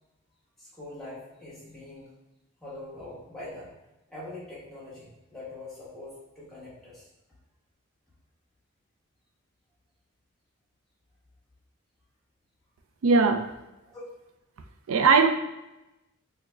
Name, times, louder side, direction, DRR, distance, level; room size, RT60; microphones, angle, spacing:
voice 1, 0.6-2.1 2.6-3.7 4.1-7.1 13.9-14.0, left 2 dB, ahead, -9 dB, 1.2 m, -43 dB
voice 2, 13.0-13.5 14.9-15.3, right 4 dB, 90° right, 7 dB, 0.4 m, -19 dB
6.6 x 2.2 x 2.2 m, 0.97 s
head